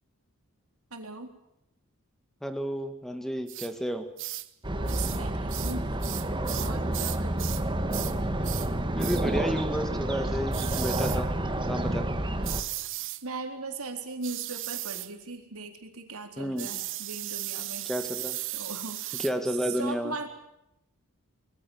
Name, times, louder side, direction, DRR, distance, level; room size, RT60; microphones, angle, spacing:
voice 1, 0.9-1.4 4.7-5.9 6.6-7.6 13.2-17.9 18.5-20.3, right 4 dB, 80° right, 5 dB, 4.0 m, -39 dB
voice 2, 2.4-4.1 8.9-11.3 11.6-12.1 16.4-16.7 17.9-18.4 19.2-20.1, equal, ahead, 8 dB, 1.8 m, -31 dB
sound 1, 3.5-3.7 4.2-4.5 4.9-5.2 5.5-7.7 7.9-8.2 8.4-8.7 9.0-9.3 10.5-11.2 12.4-13.2 14.2-15.1 16.6-19.4, right 16 dB, 60° right, 1.1 m, -36 dB
sound 2, 4.6-12.6, right 1 dB, 20° right, 1.8 m, -29 dB
25.0 x 21.5 x 7.3 m, 0.83 s
head